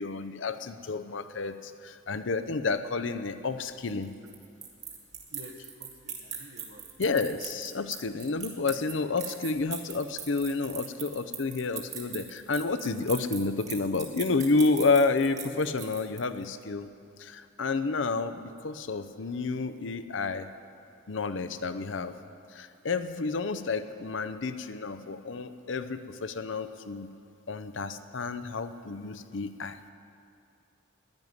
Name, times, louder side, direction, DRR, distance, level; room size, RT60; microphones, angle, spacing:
voice 1, 0.0-4.1 7.0-16.9 17.2-20.5 21.1-22.1 22.5-27.1 27.5-29.8, left 3 dB, 65° left, 10 dB, 0.6 m, -30 dB
sound 1, 3.9-16.5, right 7 dB, 35° right, 1.8 m, -40 dB
voice 2, 5.3-6.9, right 1 dB, 75° right, 4 dB, 1.4 m, -49 dB
10.5 x 10.5 x 9.6 m, 2.5 s
head